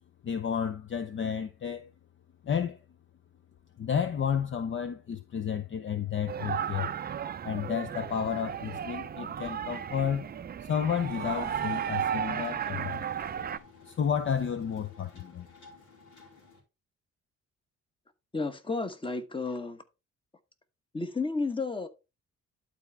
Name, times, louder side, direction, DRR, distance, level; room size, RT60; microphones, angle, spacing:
voice 1, 0.2-1.8 2.4-2.8 3.8-6.9 7.4-10.3 10.6-13.0 13.8-15.5, left 8 dB, 40° left, 0.6 m, -31 dB
sound 1, 6.3-13.6, right 8 dB, 30° right, 0.5 m, -34 dB
Waves surf, 10.8-12.3, left 5 dB, 65° left, 1.4 m, -53 dB
sound 2, 11.2-16.6, left 4 dB, 80° left, 2.9 m, -55 dB
voice 2, 18.3-19.8 20.9-21.9, left 3 dB, 15° left, 1.2 m, -32 dB
11.5 x 4.2 x 3.4 m
cardioid pair, 90°, 30 cm